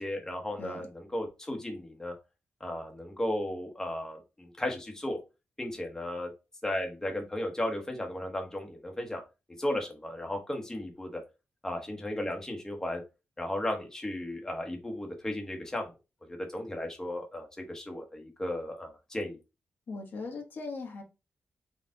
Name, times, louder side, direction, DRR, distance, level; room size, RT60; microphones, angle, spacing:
voice 1, 0.0-2.1 2.6-5.2 5.6-6.3 6.6-9.2 9.6-11.2 11.6-13.0 13.4-15.9 16.3-19.4, left 1 dB, 15° left, 2 dB, 1.0 m, -35 dB
voice 2, 19.9-21.0, left 3 dB, 65° left, 2 dB, 1.2 m, -39 dB
4.3 x 2.4 x 3.7 m, 0.27 s
cardioid pair, 95°, 4 cm